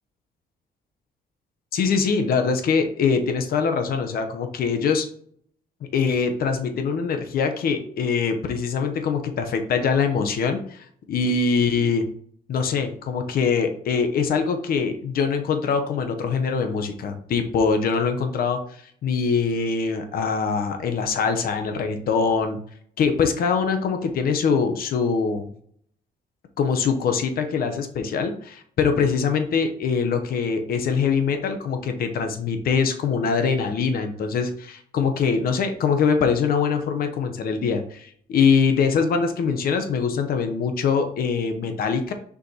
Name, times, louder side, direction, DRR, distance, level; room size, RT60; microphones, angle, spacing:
voice 1, 1.7-5.1 5.9-12.1 12.5-22.6 23.0-25.5 26.6-42.1, left 5 dB, 65° left, 6 dB, 0.9 m, -23 dB
6.5 x 5.0 x 2.9 m, 0.63 s
cardioid pair, 140°, 17 cm